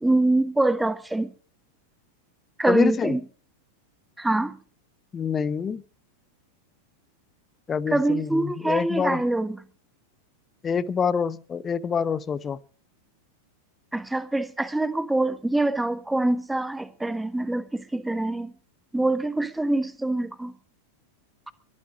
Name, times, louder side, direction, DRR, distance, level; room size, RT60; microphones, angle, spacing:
voice 1, 0.0-1.3 2.6-3.2 4.2-4.5 7.9-9.6 13.9-18.5 18.9-20.5, right 2 dB, 5° right, 1.4 m, -24 dB
voice 2, 2.7-3.2 5.1-5.8 7.7-9.2 10.6-12.6, left 6 dB, 20° left, 0.8 m, -26 dB
23.0 x 9.7 x 5.0 m
figure-of-eight pair, 90°, 0 cm